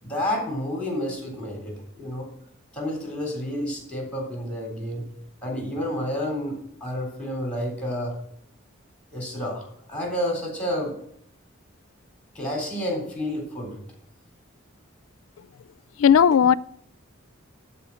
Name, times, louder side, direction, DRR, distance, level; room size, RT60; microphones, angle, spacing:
voice 1, 0.0-2.3 2.7-5.1 5.4-6.6 6.8-8.2 9.1-11.0 12.3-13.8, equal, 5° left, 3.7 m, -30 dB
voice 2, 16.0-16.6, left 8 dB, 75° left, 0.4 m, -15 dB
12.0 x 4.3 x 7.0 m
head